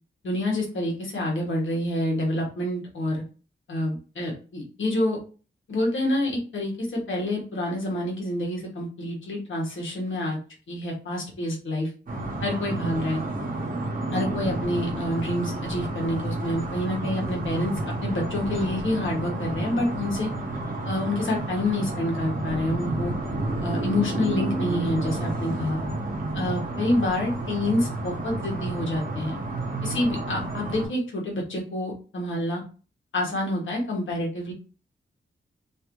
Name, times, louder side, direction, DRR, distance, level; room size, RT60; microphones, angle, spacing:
voice 1, 0.2-3.2 3.7-5.2 5.7-10.4 10.7-11.9 12.4-13.2 14.1-17.7 18.0-20.3 20.8-23.1 23.6-25.8 26.3-29.4 29.8-32.6 33.1-34.5, left 1 dB, 80° left, -2 dB, 1.3 m, -27 dB
sound 1, 12.1-30.9, right 2 dB, 45° right, 0.9 m, -30 dB
2.8 x 2.6 x 3.0 m, 0.36 s
wide cardioid pair, 120°, 20 cm